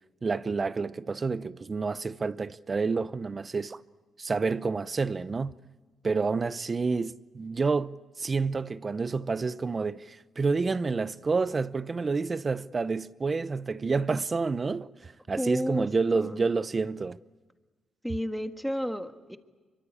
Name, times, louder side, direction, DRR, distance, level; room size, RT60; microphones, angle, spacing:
voice 1, 0.2-3.8 4.2-5.5 6.0-17.2, right 4 dB, 35° right, 0.7 m, -29 dB
voice 2, 15.4-15.9 16.1-16.5 18.0-19.4, equal, ahead, 1.5 m, -32 dB
24.0 x 23.5 x 8.5 m
cardioid pair, 80°, 0 cm